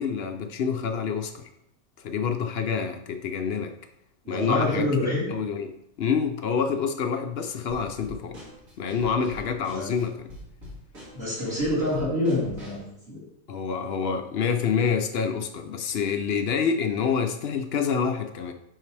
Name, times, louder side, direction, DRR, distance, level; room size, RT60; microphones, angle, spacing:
voice 1, 0.0-1.5 2.0-3.7 4.3-8.4 8.8-10.3 13.5-18.5, left 6 dB, 65° left, 6 dB, 0.6 m, -27 dB
voice 2, 4.2-5.3 9.7-9.9 11.1-13.2, left 1 dB, 40° right, -9 dB, 3.3 m, -27 dB
Drum kit / Snare drum, 7.7-12.9, equal, 70° right, 2.6 m, -44 dB
10.5 x 4.0 x 3.3 m, 0.80 s
omnidirectional pair, 1.5 m